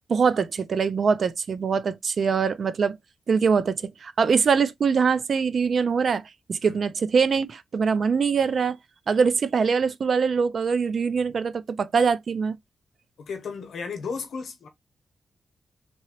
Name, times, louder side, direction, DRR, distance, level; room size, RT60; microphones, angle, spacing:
voice 1, 0.1-3.0 3.3-6.2 6.5-8.8 9.1-12.6, right 5 dB, 50° right, 0.3 m, -23 dB
voice 2, 13.2-14.7, left 5 dB, 80° left, 0.9 m, -34 dB
3.0 x 2.7 x 2.9 m
wide cardioid pair, 180°, 0 cm